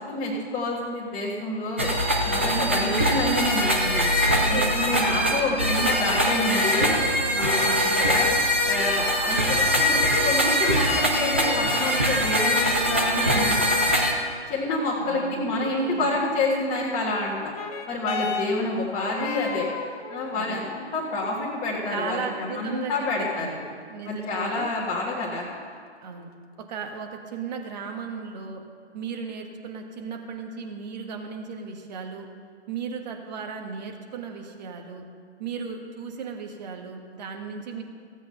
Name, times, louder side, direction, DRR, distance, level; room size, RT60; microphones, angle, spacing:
voice 1, 0.0-1.9 2.3-7.0 7.3-8.3 8.6-14.0 14.5-17.5 17.9-19.7 20.1-23.6 24.0-25.4, left 2 dB, 15° left, -6 dB, 1.4 m, -28 dB
sound 1, 1.8-14.1, equal, 10° right, 0.3 m, -22 dB
voice 2, 2.4-3.3 4.2-6.6 7.5-7.9 15.0-16.1 20.3-20.7 21.9-22.9 23.2-23.6 23.9-24.7 26.0-26.3 26.7-28.6 28.9-32.3 32.7-35.0 35.4-37.8, right 5 dB, 40° right, 3 dB, 1.5 m, -36 dB
sound 2, 17.3-26.2 27.1-27.2, left 6 dB, 30° left, 0.9 m, -38 dB
15.5 x 8.1 x 5.5 m, 2.1 s
figure-of-eight pair, 135°, 34 cm